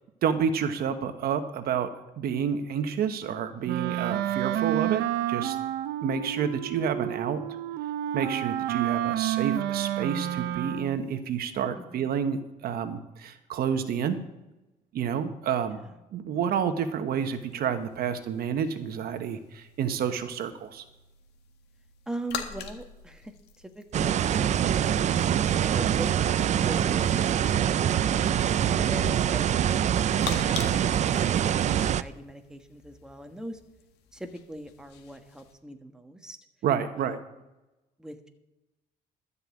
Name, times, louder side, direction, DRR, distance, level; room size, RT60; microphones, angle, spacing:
voice 1, 0.2-1.9 2.2-5.6 6.0-7.4 8.1-14.2 14.9-15.8 16.1-20.8 30.5-30.8 36.6-37.2, right 7 dB, 65° right, 9 dB, 1.2 m, -29 dB
Wind instrument woodwind instrument, 3.6-11.1, right 12 dB, 80° right, 0.8 m, -30 dB
voice 2, 11.8-12.1 15.7-16.0 22.1-25.1 25.5-27.1 27.5-29.9 30.2-30.4 30.9-33.6 34.1-36.4 37.0-37.2 38.0-38.3, right 1 dB, 5° right, 5 dB, 1.3 m, -41 dB
sound 1, 17.2-35.5, left 8 dB, 80° left, 1.9 m, -46 dB
sound 2, 23.9-32.0, right 9 dB, 45° right, 0.5 m, -24 dB
13.0 x 5.6 x 8.3 m, 1.0 s
cardioid pair, 110°, 17 cm